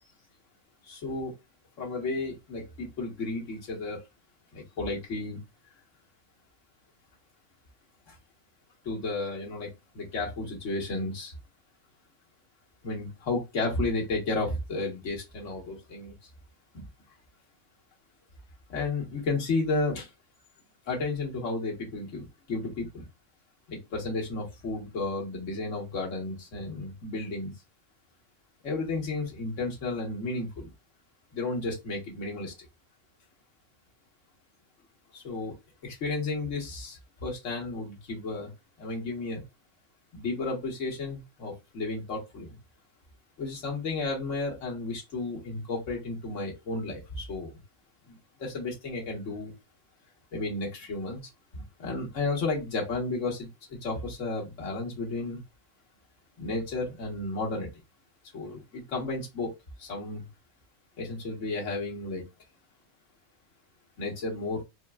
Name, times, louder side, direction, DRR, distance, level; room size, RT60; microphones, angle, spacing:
voice 1, 0.9-1.3 1.8-4.0 4.5-5.4 8.1-8.2 8.8-11.3 12.8-16.1 16.7-16.8 18.7-20.1 20.9-23.0 23.7-27.5 28.6-30.7 31.3-32.5 35.1-35.5 35.8-38.5 38.8-39.4 40.1-42.6 43.4-47.5 48.1-49.5 50.3-51.2 51.5-55.4 56.4-57.7 58.3-59.5 59.8-60.3 61.0-62.2 64.0-64.6, left 3 dB, 60° left, 1.5 m, -33 dB
4.4 x 2.0 x 2.3 m
omnidirectional pair, 1.5 m